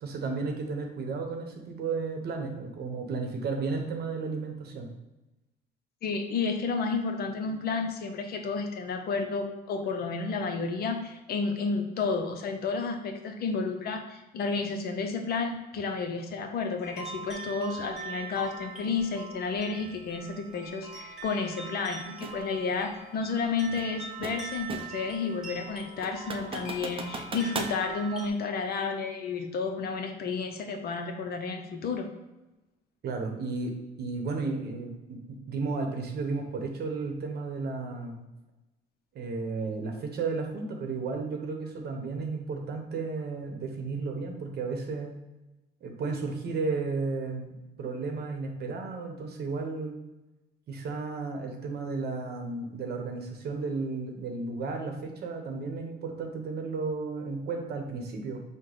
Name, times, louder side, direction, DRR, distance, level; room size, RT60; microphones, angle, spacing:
voice 1, 0.0-4.9 33.0-38.2 39.1-45.2 45.8-50.0 50.7-58.4, right 4 dB, 55° right, 4 dB, 0.9 m, -33 dB
voice 2, 6.0-32.1, left 4 dB, 50° left, 5 dB, 0.6 m, -31 dB
sound 1, 16.8-28.3, right 4 dB, 5° right, 1.2 m, -42 dB
sound 2, 22.2-22.4 23.8-25.1 25.5-25.6 26.0-27.8, right 3 dB, 25° right, 0.5 m, -37 dB
4.9 x 2.2 x 3.9 m, 1.0 s
supercardioid pair, 95°, 20 cm